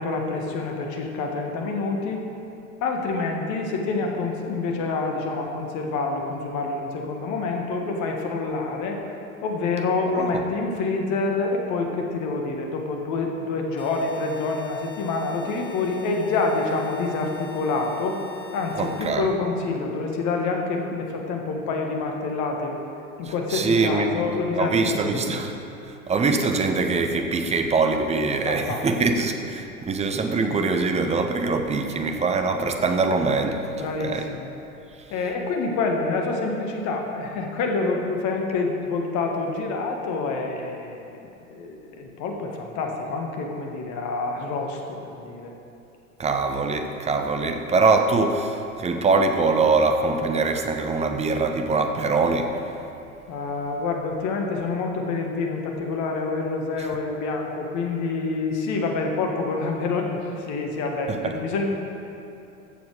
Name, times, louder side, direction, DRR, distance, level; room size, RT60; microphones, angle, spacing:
voice 1, 0.0-2.2 2.8-9.0 9.4-18.2 18.5-22.8 23.2-25.2 28.4-29.0 33.7-34.5 35.1-41.1 41.4-45.5 53.3-61.6, left 3 dB, 40° left, 2 dB, 1.7 m, -27 dB
sound 1, 13.8-19.1, left 7 dB, 80° left, 1.3 m, -45 dB
voice 2, 18.8-19.3 23.5-24.3 24.5-25.5 25.9-34.3 46.2-52.7 56.8-56.9 61.1-61.4, right 3 dB, 15° right, 5 dB, 0.7 m, -23 dB
14.0 x 7.1 x 4.9 m, 2.8 s
figure-of-eight pair, 80°, 44 cm